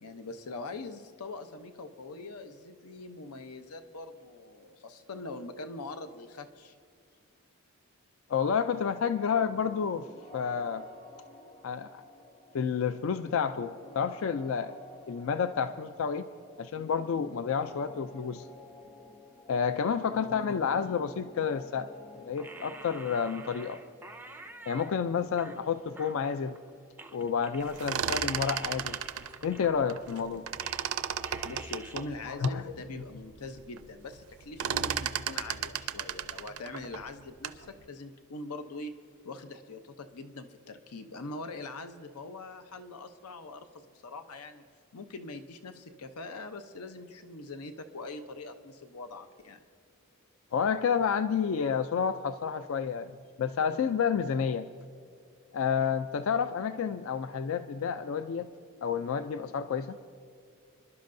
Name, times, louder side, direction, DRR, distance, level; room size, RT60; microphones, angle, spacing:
voice 1, 0.0-6.7 20.1-20.3 31.4-38.9 39.2-44.6 44.9-49.6, left 3 dB, 90° left, 9 dB, 0.7 m, -43 dB
voice 2, 8.3-10.9 11.6-12.0 12.5-14.7 15.1-16.3 16.6-18.5 19.5-21.9 22.2-23.8 24.7-26.6 27.1-29.0 29.4-30.4 32.3-32.6 50.5-53.1 53.4-54.7 55.5-58.5 58.8-60.0, left 6 dB, 65° left, 11 dB, 0.3 m, -30 dB
sound 1, 9.2-26.9, left 1 dB, 25° left, 0.9 m, -52 dB
sound 2, 22.4-24.9 25.4-26.7 27.0-31.0 31.2-32.1, right 2 dB, 10° right, 0.4 m, -48 dB
sound 3, 27.6-30.2 30.5-32.6 33.1-33.2 33.5-33.9 34.1-37.7, right 8 dB, 75° right, 0.5 m, -34 dB
26.0 x 11.5 x 2.6 m, 2.3 s
head